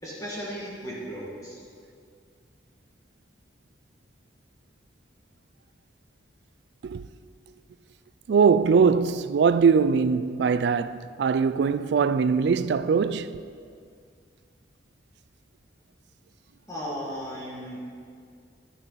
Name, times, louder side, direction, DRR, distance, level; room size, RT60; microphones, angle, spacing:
voice 1, 0.0-1.6 16.7-17.8, equal, 20° left, 1.9 m, -35 dB
voice 2, 8.3-13.4, right 5 dB, 65° right, 0.3 m, -21 dB
11.0 x 9.3 x 4.1 m
head